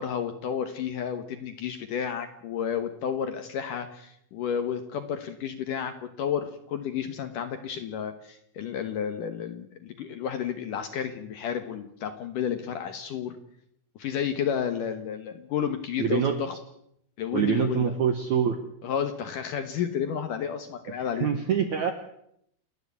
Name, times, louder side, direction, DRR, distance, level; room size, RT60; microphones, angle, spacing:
voice 1, 0.0-13.3 14.0-16.6 17.2-17.9 18.8-21.3, left 8 dB, 65° left, 8 dB, 2.2 m, -31 dB
voice 2, 16.0-16.4 17.3-18.6 20.9-21.9, right 8 dB, 70° right, 8 dB, 1.8 m, -25 dB
29.0 x 11.0 x 8.3 m, 0.73 s
omnidirectional pair, 5.0 m